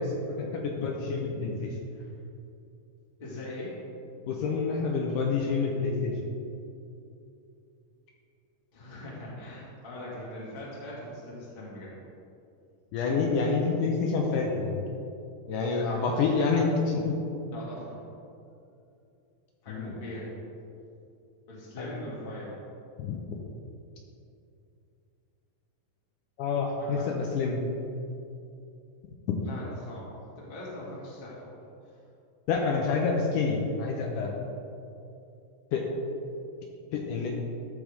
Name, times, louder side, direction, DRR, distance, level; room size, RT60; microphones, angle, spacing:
voice 1, 0.0-1.7 4.3-6.1 12.9-14.8 15.5-17.2 19.7-19.9 21.8-21.9 23.0-23.2 26.4-27.6 32.5-34.3 35.7-35.9 36.9-37.3, left 4 dB, 75° left, 0 dB, 2.1 m, -28 dB
voice 2, 3.2-3.7 8.7-11.9 15.8-16.2 17.5-18.0 19.6-20.3 21.5-22.5 26.8-27.1 29.4-31.6 31.8-31.9, left 1 dB, 25° left, -6 dB, 1.2 m, -41 dB
13.5 x 5.0 x 3.5 m, 2.7 s
omnidirectional pair, 4.1 m